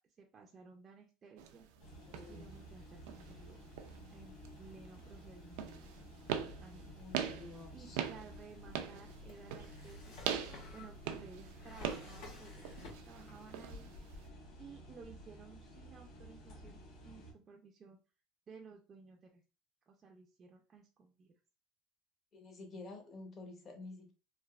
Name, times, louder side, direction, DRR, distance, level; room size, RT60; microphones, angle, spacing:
voice 1, 0.2-1.7 2.3-3.6 4.1-5.9 6.6-6.9 7.7-10.4 10.7-13.9 14.2-18.0 18.5-19.4 19.9-21.3, right 5 dB, 30° right, 0 dB, 0.4 m, -56 dB
sound 1, 1.4-14.3, right 9 dB, 85° right, 0.4 m, -43 dB
sound 2, 1.8-17.3, equal, 55° left, 1.3 m, -54 dB
voice 2, 2.1-2.5 6.9-8.0 22.3-24.1, left 3 dB, 30° left, 4 dB, 0.8 m, -50 dB
Drawer open or close, 8.3-13.4 13.7-14.5, left 3 dB, 85° left, 1.7 m, -53 dB
3.3 x 2.5 x 2.3 m, 0.32 s
cardioid pair, 155°, 0 cm